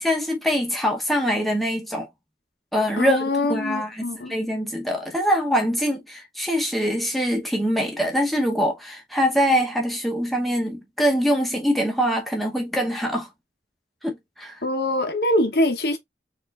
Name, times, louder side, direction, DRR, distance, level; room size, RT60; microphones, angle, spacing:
voice 1, 0.0-2.1 2.7-13.3 14.0-14.6, equal, ahead, 0.7 m, -24 dB
voice 2, 3.0-4.3 14.6-16.0, left 1 dB, 60° left, 0.8 m, -23 dB
4.3 x 2.4 x 2.3 m
head